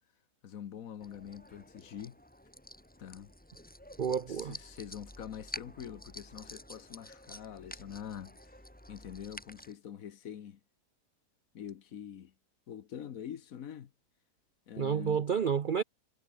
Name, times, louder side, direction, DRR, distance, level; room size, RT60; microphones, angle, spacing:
voice 1, 0.4-2.2 3.0-3.3 4.3-8.4 8.9-10.6 11.5-12.3 12.7-13.9 14.7-15.2, left 9 dB, 60° left, 1.3 m, -45 dB
sound 1, 1.0-9.7, equal, 5° left, 2.6 m, -49 dB
voice 2, 4.0-4.6 14.8-15.8, right 7 dB, 55° right, 0.5 m, -30 dB
omnidirectional pair, 1.7 m